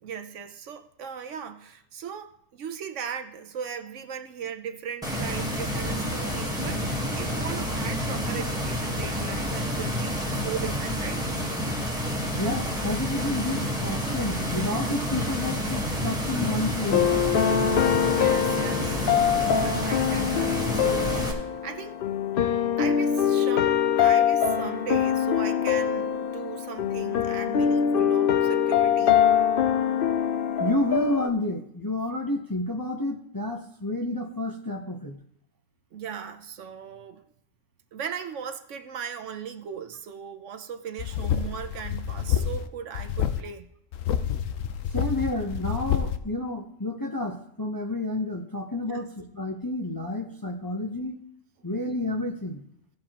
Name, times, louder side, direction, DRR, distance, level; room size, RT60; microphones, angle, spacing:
voice 1, 0.0-6.9 7.2-11.3 18.1-22.0 22.8-29.2 35.9-37.2 37.9-43.7 48.9-49.1, right 7 dB, 70° right, 1.0 m, -38 dB
sound 1, 5.0-21.3, equal, 5° right, 1.3 m, -29 dB
voice 2, 12.4-17.1 30.6-35.2 44.9-51.2 51.6-52.6, left 1 dB, 20° left, 0.6 m, -30 dB
sound 2, 16.5-31.3, left 8 dB, 60° left, 0.6 m, -24 dB
sound 3, 41.0-42.7 42.9-43.4 43.9-46.2, left 9 dB, 80° left, 1.0 m, -28 dB
16.5 x 7.5 x 2.9 m
omnidirectional pair, 1.3 m